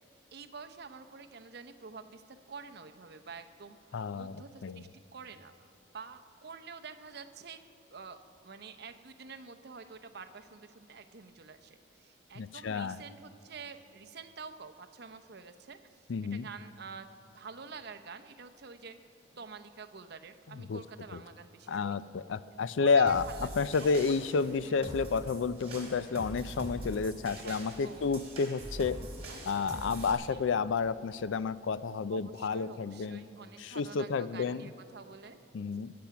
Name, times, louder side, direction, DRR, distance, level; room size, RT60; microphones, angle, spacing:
voice 1, 0.3-7.6 7.9-15.8 16.3-19.0 19.3-22.0 22.8-23.5 23.8-23.9 24.6-24.8 27.4-28.1 29.3-30.4 32.1-35.4, right 5 dB, 55° right, 8 dB, 0.7 m, -48 dB
voice 2, 3.9-4.8 12.3-13.0 16.1-16.5 20.5-20.8 21.1-21.2 21.7-29.1 29.5-33.3 33.6-34.7 35.5-35.9, left 5 dB, 80° left, 16 dB, 0.4 m, -31 dB
sound 1, 23.1-30.1, right 1 dB, 30° right, 3.2 m, -44 dB
23.0 x 8.7 x 5.9 m, 2.8 s
head